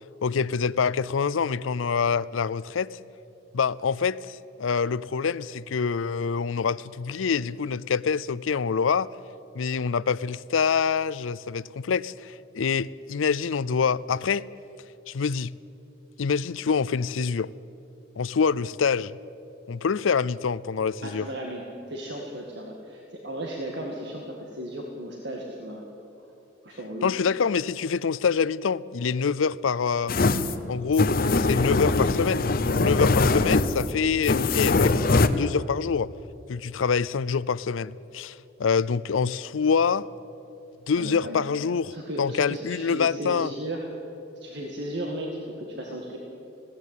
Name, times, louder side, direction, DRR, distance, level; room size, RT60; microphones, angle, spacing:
voice 1, 0.2-3.0 3.5-9.1 9.5-14.5 15.1-15.5 16.2-17.5 18.2-19.2 19.7-21.2 27.0-30.2 30.7-36.1 36.5-40.1 40.9-43.5, left 6 dB, 90° left, 0.5 m, -26 dB
voice 2, 21.0-25.8 26.6-27.1 41.0-41.4 41.9-43.9 44.4-46.2, right 1 dB, 60° right, 2.0 m, -35 dB
sound 1, 30.1-35.3, left 3 dB, 50° left, 0.8 m, -22 dB
20.5 x 16.5 x 8.3 m
head